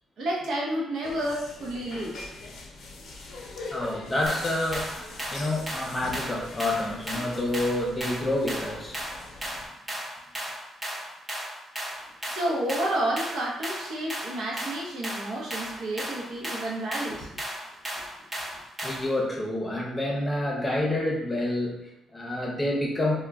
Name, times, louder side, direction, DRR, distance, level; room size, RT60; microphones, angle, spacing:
voice 1, 0.2-2.2 12.3-17.4, right 1 dB, 75° right, -3 dB, 0.7 m, -30 dB
sound 1, 1.0-9.7, left 3 dB, 75° left, 0.5 m, -42 dB
voice 2, 3.7-9.0 18.8-23.2, left 1 dB, 20° left, -2 dB, 0.7 m, -28 dB
sound 2, 4.3-19.2, equal, 15° right, 0.8 m, -36 dB
2.2 x 2.1 x 3.5 m, 0.84 s
cardioid pair, 90°, 0 cm